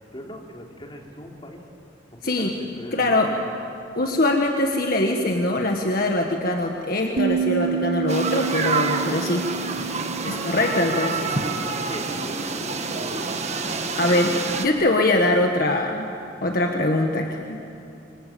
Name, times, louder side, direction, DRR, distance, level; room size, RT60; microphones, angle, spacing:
voice 1, 0.0-1.6 2.1-3.5 10.3-11.1 11.9-13.5, left 1 dB, 30° left, 0 dB, 3.4 m, -40 dB
voice 2, 2.9-3.3 4.0-9.5 10.2-11.3 14.0-16.1 16.4-17.6, left 1 dB, 55° left, 2 dB, 1.7 m, -22 dB
sound 1, 7.2-12.3, right 6 dB, 65° right, 1.0 m, -29 dB
sound 2, 8.1-14.7, right 4 dB, 40° right, 1.5 m, -27 dB
26.5 x 25.5 x 8.8 m, 2.8 s
head